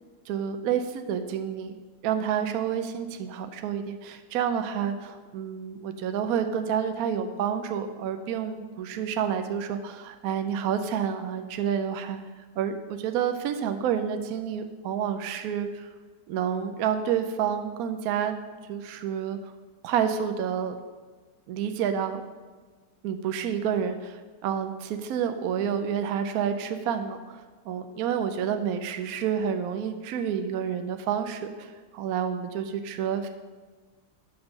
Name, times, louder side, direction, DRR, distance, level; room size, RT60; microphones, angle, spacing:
voice 1, 0.3-1.8 2.0-12.2 12.6-15.9 16.3-18.4 18.7-19.4 19.8-20.8 21.5-22.2 23.0-33.3, right 8 dB, 70° right, 7 dB, 1.0 m, -29 dB
7.9 x 6.5 x 5.3 m, 1.4 s
omnidirectional pair, 1.7 m